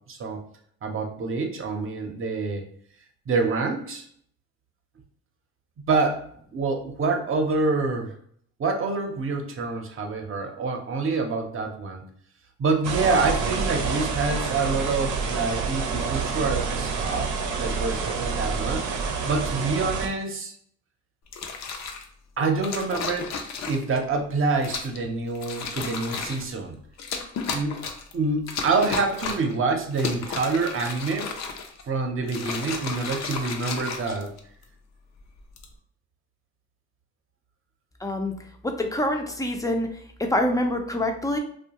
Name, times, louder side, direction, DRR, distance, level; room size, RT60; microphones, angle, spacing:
voice 1, 0.1-0.4 0.8-2.6 3.3-4.0 5.9-6.2 6.5-8.1 8.6-12.0 12.6-17.3 17.6-18.8 19.2-20.5 22.4-23.3 23.7-26.8 27.5-27.7 28.1-31.3 31.9-34.3, right 3 dB, 45° right, 3 dB, 0.7 m, -26 dB
sound 1, 12.8-20.1, right 5 dB, 80° right, 0.6 m, -28 dB
sound 2, 21.3-22.1 22.6-24.0 24.6-25.0 25.3-26.5 27.0-28.1 28.5-29.5 29.9-31.8 32.2-34.6 35.4-35.7, left 5 dB, 60° left, 0.5 m, -33 dB
voice 2, 38.0-38.3 38.6-41.4, left 1 dB, 10° left, 4 dB, 0.4 m, -26 dB
2.6 x 2.2 x 2.9 m, 0.64 s
cardioid pair, 90°, 30 cm